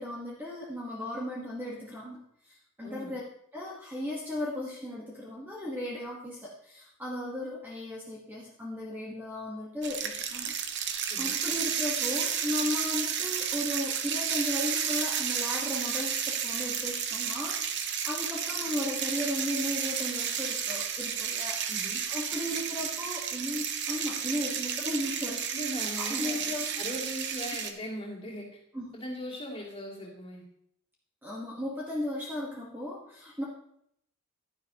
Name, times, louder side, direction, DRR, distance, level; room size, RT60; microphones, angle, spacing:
voice 1, 0.0-3.2 3.5-10.9 11.2-25.4 25.7-26.7 28.7-28.9 31.2-33.4, left 1 dB, 10° right, -4 dB, 1.3 m, -36 dB
voice 2, 2.8-3.1 11.1-11.4 21.7-22.0 25.5-28.4 28.9-30.4, equal, 25° left, -4 dB, 2.7 m, -39 dB
sound 1, 9.8-27.7, right 7 dB, 50° right, 0.8 m, -32 dB
11.5 x 10.0 x 2.9 m, 0.72 s
head